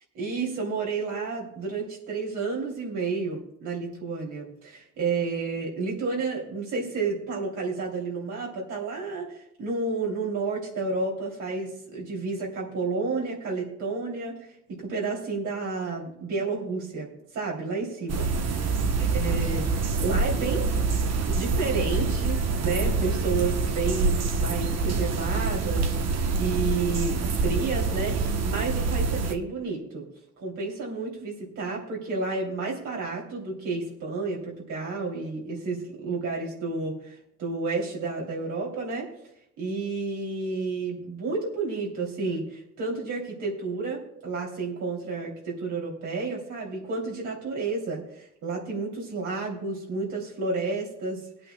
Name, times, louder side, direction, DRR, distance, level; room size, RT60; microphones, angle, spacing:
voice 1, 0.1-14.4 14.7-18.7 19.1-20.7 21.3-30.1 30.4-39.1 39.6-51.5, right 4 dB, 75° right, -3 dB, 3.1 m, -31 dB
sound 1, 18.1-29.3, right 4 dB, 60° right, 1.1 m, -26 dB
23.0 x 8.8 x 2.3 m, 0.77 s
cardioid pair, 90°, 30 cm